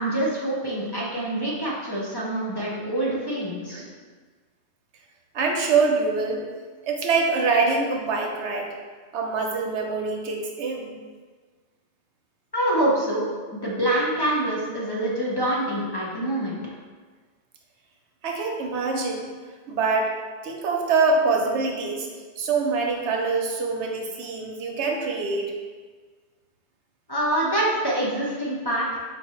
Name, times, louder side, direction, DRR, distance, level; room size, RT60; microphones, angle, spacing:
voice 1, 0.0-3.8 12.5-13.3 13.5-16.6 27.1-29.0, right 1 dB, 25° left, -6 dB, 0.6 m, -25 dB
voice 2, 5.3-6.4 6.8-8.7 9.1-11.0 18.2-19.3 19.7-20.1 20.4-22.1 22.4-25.5, right 4 dB, 90° right, 1 dB, 1.0 m, -24 dB
4.4 x 2.7 x 4.3 m, 1.5 s
omnidirectional pair, 1.1 m